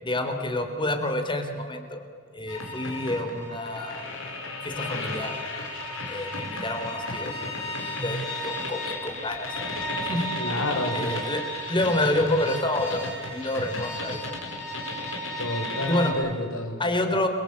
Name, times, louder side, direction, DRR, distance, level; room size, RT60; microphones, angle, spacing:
voice 1, 0.0-2.0 2.3-4.0 4.6-5.3 6.1-7.4 7.9-9.5 10.0-10.3 10.9-14.2 15.9-16.1 16.8-17.3, left 1 dB, 25° left, 6 dB, 3.4 m, -28 dB
sound 1, 2.5-16.1, left 1 dB, 70° left, 5.6 m, -33 dB
voice 2, 10.4-11.3 15.4-16.8, left 1 dB, 85° left, 5 dB, 5.4 m, -30 dB
30.0 x 23.0 x 8.6 m, 2.2 s
head